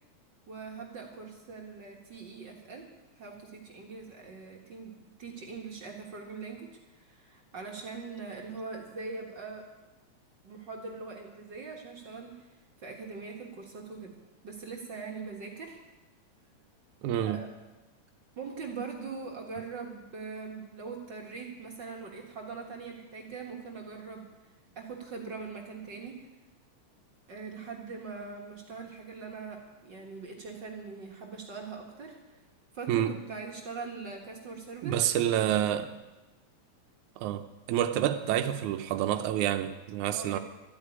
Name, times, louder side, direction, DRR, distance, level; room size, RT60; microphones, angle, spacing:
voice 1, 0.5-2.9 3.2-9.7 10.4-14.2 14.4-15.8 17.2-17.5 18.4-24.3 24.8-26.3 27.3-32.2 32.7-35.0 40.1-40.4, right 4 dB, 45° right, 0 dB, 2.0 m, -42 dB
voice 2, 17.0-17.4 32.9-33.1 34.8-35.9 37.2-40.4, right 11 dB, 85° right, 7 dB, 2.2 m, -28 dB
12.5 x 8.8 x 9.8 m, 1.1 s
omnidirectional pair, 3.4 m